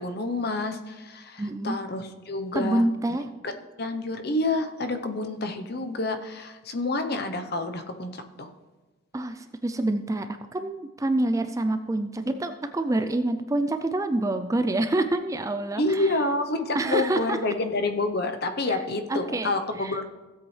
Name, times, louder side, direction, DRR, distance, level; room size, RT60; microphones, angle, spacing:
voice 1, 0.0-2.9 3.4-3.5 3.8-8.5 15.8-20.1, left 2 dB, 50° left, 7 dB, 0.8 m, -28 dB
voice 2, 1.4-1.8 2.5-3.3 9.1-10.3 10.5-16.1 16.7-17.4 18.7-18.8 19.1-19.5 19.8-20.0, right 2 dB, 15° right, 8 dB, 0.3 m, -27 dB
16.0 x 7.9 x 3.3 m, 1.2 s
head